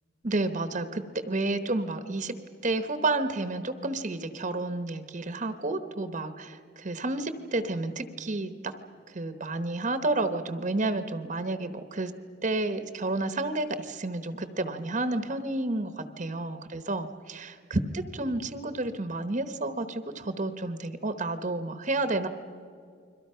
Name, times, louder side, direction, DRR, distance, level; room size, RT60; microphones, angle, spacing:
voice 1, 0.2-2.4 2.6-8.7 9.1-12.1 12.4-22.3, right 2 dB, 40° right, 10 dB, 1.0 m, -30 dB
30.0 x 22.5 x 5.7 m, 2.3 s
head